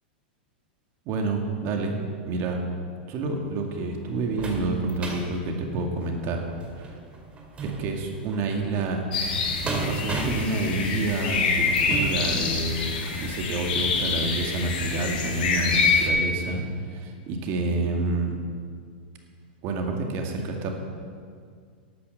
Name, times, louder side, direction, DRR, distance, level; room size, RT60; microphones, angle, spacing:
voice 1, 1.1-1.9 2.2-2.6 3.1-6.4 6.8-7.0 7.6-9.0 9.6-18.4 19.6-20.7, right 3 dB, 45° right, 2 dB, 2.1 m, -28 dB
sound 1, 3.4-13.3 13.8-13.9 14.3-14.4, right 3 dB, 20° right, 2.2 m, -37 dB
sound 2, 9.1-16.1, left 5 dB, 70° left, 2.3 m, -26 dB
12.5 x 8.6 x 6.7 m, 2.1 s
hypercardioid pair, 120°, 5 cm